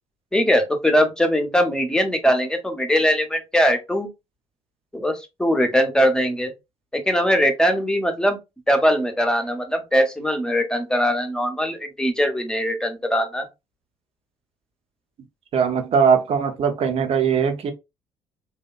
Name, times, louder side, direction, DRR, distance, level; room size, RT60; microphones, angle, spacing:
voice 1, 0.3-4.1 4.9-6.5 6.9-8.4 8.7-13.5, equal, 5° left, 0.7 m, -21 dB
voice 2, 15.5-17.7, right 6 dB, 45° right, 0.7 m, -20 dB
2.8 x 2.2 x 2.2 m
figure-of-eight pair, 50°, 14 cm